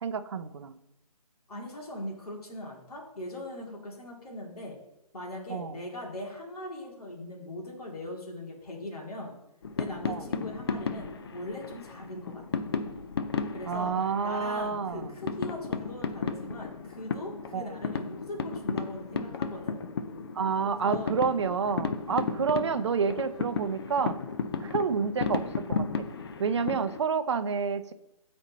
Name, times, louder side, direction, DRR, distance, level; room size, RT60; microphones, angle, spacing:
voice 1, 0.0-0.8 5.5-5.8 10.1-10.2 13.7-15.1 17.5-17.7 20.3-24.2 24.6-26.1 26.4-27.9, right 6 dB, 45° right, 12 dB, 0.5 m, -29 dB
voice 2, 1.5-4.8 5.1-9.4 9.8-12.6 13.5-14.0 14.2-19.8 20.6-21.5 22.1-22.5, left 1 dB, 70° left, -1 dB, 2.2 m, -40 dB
sound 1, 9.6-27.0, left 5 dB, 40° left, 0.5 m, -34 dB
8.9 x 4.3 x 4.0 m, 0.87 s
figure-of-eight pair, 155°, 20 cm